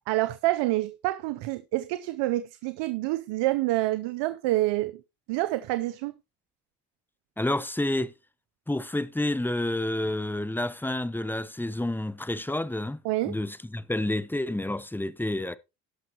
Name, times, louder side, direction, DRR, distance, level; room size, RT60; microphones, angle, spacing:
voice 1, 0.1-5.0 5.3-6.1 13.0-13.3, right 17 dB, 80° right, 0.6 m, -27 dB
voice 2, 7.4-8.1 8.7-15.6, left 1 dB, 5° left, 0.7 m, -29 dB
18.0 x 6.2 x 2.9 m
supercardioid pair, 70°, 42 cm